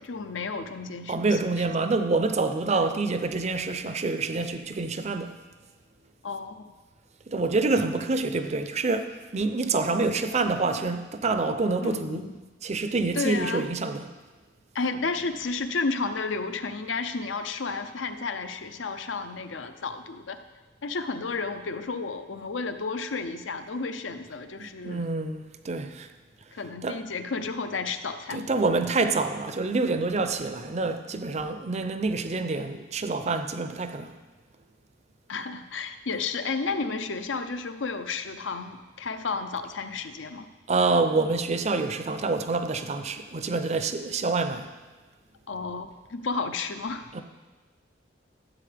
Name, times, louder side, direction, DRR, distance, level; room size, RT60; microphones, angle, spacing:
voice 1, 0.0-1.4 2.7-2.8 6.2-6.7 11.8-12.3 13.1-13.7 14.7-20.4 20.8-25.1 26.5-28.5 35.3-40.5 45.5-47.0, left 4 dB, 75° left, 0.6 m, -32 dB
voice 2, 1.1-5.4 7.3-12.2 12.6-14.1 24.6-26.1 26.8-27.0 28.3-34.1 40.7-44.7 47.1-47.2, right 3 dB, 35° right, 0.5 m, -27 dB
13.5 x 8.0 x 3.4 m
head